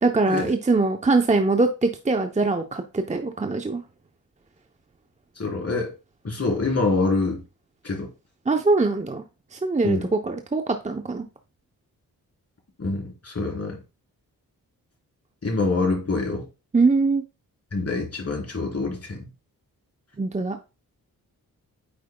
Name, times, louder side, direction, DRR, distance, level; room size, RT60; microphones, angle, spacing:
voice 1, 0.0-3.8 8.5-9.2 9.5-11.2 16.7-17.2 20.2-20.6, right 3 dB, 20° right, 6 dB, 0.7 m, -22 dB
voice 2, 5.4-5.9 6.2-7.4 7.8-8.1 9.8-10.1 12.8-13.8 15.4-16.5 17.7-19.3, left 3 dB, 40° left, 0 dB, 3.6 m, -25 dB
8.7 x 4.9 x 2.2 m, 0.29 s
cardioid pair, 60°, 36 cm